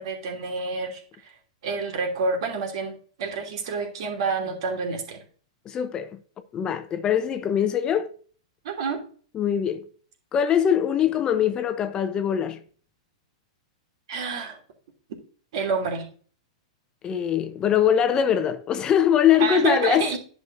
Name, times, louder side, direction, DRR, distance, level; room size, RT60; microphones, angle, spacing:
voice 1, 0.0-1.3 1.6-5.2 8.6-9.0 14.1-14.6 15.5-16.0 19.4-20.2, right 4 dB, 65° right, 2.9 m, -28 dB
voice 2, 5.6-6.2 6.5-8.1 9.3-9.8 10.3-12.6 17.0-20.2, left 9 dB, 25° left, 0.8 m, -22 dB
10.5 x 6.3 x 2.7 m
hypercardioid pair, 115°, 3 cm